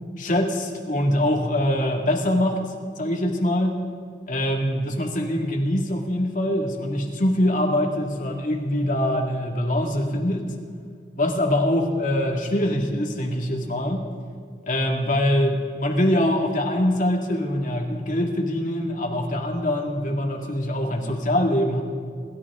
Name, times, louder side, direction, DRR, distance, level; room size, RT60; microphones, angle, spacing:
voice 1, 0.2-2.6 3.0-3.8 4.3-10.5 11.2-14.1 14.6-21.8, left 1 dB, 45° left, 1 dB, 2.0 m, -23 dB
27.0 x 13.5 x 3.7 m, 2.1 s
head